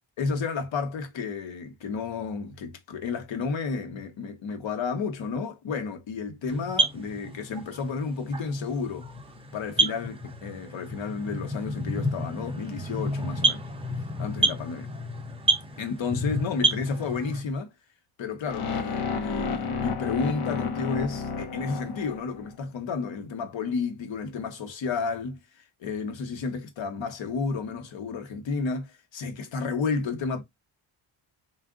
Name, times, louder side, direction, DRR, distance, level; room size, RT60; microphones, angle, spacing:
voice 1, 0.2-9.1 9.5-13.6 14.2-14.9 15.8-17.7 18.2-30.4, left 4 dB, 65° left, 1.1 m, -32 dB
sound 1, 6.5-17.4, right 1 dB, 10° right, 0.5 m, -29 dB
sound 2, 18.5-22.6, left 5 dB, 90° left, 1.1 m, -31 dB
3.6 x 2.5 x 3.6 m
wide cardioid pair, 160°, 49 cm